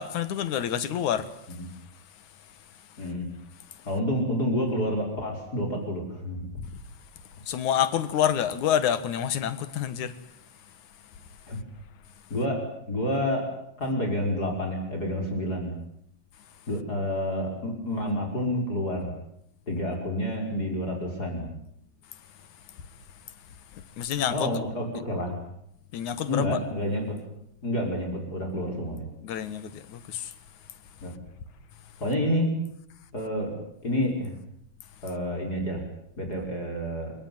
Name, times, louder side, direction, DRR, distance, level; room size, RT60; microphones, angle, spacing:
voice 1, 0.0-1.8 2.7-3.0 3.7-3.9 6.6-6.8 7.5-10.2 22.7-22.8 23.7-24.5 25.9-26.6 28.7-28.9 29.2-30.3, left 9 dB, 90° left, 3.0 m, -28 dB
voice 2, 3.0-3.3 3.9-6.5 11.5-11.6 12.3-12.6 12.9-13.5 13.8-15.7 16.7-19.1 19.7-21.5 24.3-25.4 26.3-27.2 27.6-29.1 31.0-31.1 32.0-32.5 33.1-33.5 33.8-34.3 35.0-35.8 36.2-37.1, left 1 dB, 30° left, 6.0 m, -29 dB
29.5 x 18.5 x 9.5 m
omnidirectional pair, 3.3 m